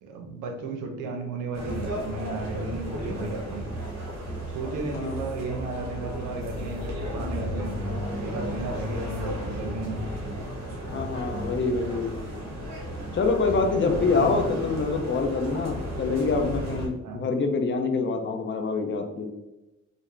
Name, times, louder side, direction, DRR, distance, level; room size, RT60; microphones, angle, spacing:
voice 1, 0.0-3.7 4.4-10.0 13.5-14.4 17.0-17.2, right 3 dB, 90° right, 3 dB, 0.7 m, -34 dB
sound 1, 1.5-16.9, equal, 60° right, 1.1 m, -33 dB
voice 2, 10.8-12.1 13.1-19.3, left 4 dB, 40° left, 5 dB, 0.5 m, -26 dB
3.7 x 2.0 x 3.3 m, 0.98 s
cardioid pair, 90°, 30 cm